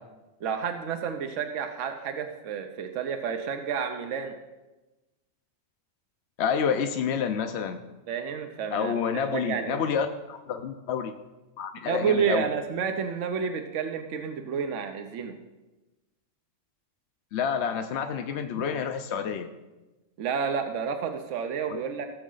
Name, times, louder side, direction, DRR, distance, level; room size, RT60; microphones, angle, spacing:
voice 1, 0.4-4.4 8.1-9.8 11.8-15.3 20.2-22.1, right 6 dB, 75° right, 7 dB, 1.1 m, -30 dB
voice 2, 6.4-7.8 8.7-11.1 11.6-12.5 17.3-19.5 21.7-21.8, left 7 dB, 65° left, 6 dB, 0.8 m, -28 dB
16.5 x 7.3 x 3.9 m, 1.1 s
omnidirectional pair, 1.3 m